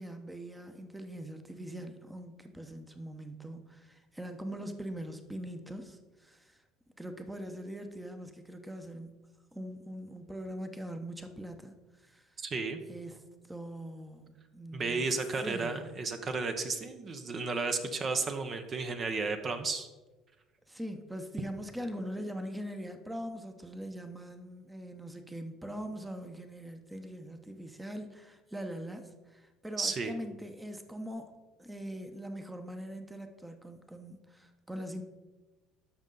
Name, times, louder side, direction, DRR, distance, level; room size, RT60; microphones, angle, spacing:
voice 1, 0.0-6.6 7.0-9.2 9.5-12.3 12.9-13.2 13.5-15.1 15.4-15.9 20.7-31.3 31.6-35.0, equal, 10° right, 7 dB, 0.9 m, -42 dB
voice 2, 12.4-12.8 14.7-19.9 29.8-30.1, right 4 dB, 35° right, 7 dB, 0.8 m, -33 dB
13.0 x 5.4 x 3.9 m, 1.2 s
supercardioid pair, 100°, 0 cm